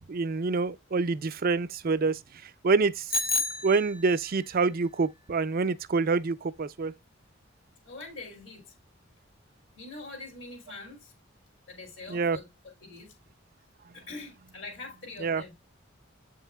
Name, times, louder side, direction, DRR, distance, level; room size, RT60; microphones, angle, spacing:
voice 1, 0.1-3.1 3.6-6.9 12.1-12.4 15.2-15.4, right 4 dB, 50° right, 0.5 m, -27 dB
Bicycle bell, 3.1-4.4, left 2 dB, 50° left, 1.0 m, -30 dB
voice 2, 7.8-8.7 9.7-11.1 11.7-12.5 12.8-13.1 13.9-15.5, left 3 dB, 65° left, 2.8 m, -43 dB
8.1 x 5.6 x 2.3 m
head